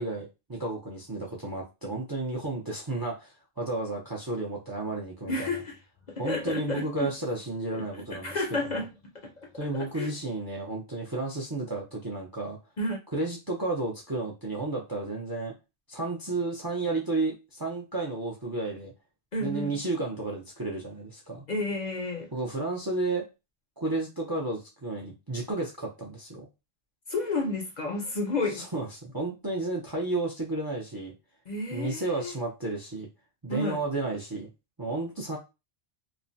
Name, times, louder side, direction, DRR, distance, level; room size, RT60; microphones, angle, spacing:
voice 1, 0.0-5.6 6.2-8.4 8.6-8.8 9.5-12.6 13.1-15.5 15.9-18.9 19.4-21.4 22.3-23.2 23.8-26.5 28.5-31.1 31.7-33.1 33.4-34.5 34.8-35.4, right 2 dB, 30° right, 0.5 m, -32 dB
voice 2, 5.3-5.8 6.1-7.1 7.7-8.9 9.2-10.1 12.8-13.0 19.3-19.8 21.5-22.3 27.1-28.6 31.5-32.4 33.5-33.8, left 2 dB, 50° left, 0.7 m, -31 dB
3.1 x 2.1 x 2.6 m
omnidirectional pair, 1.1 m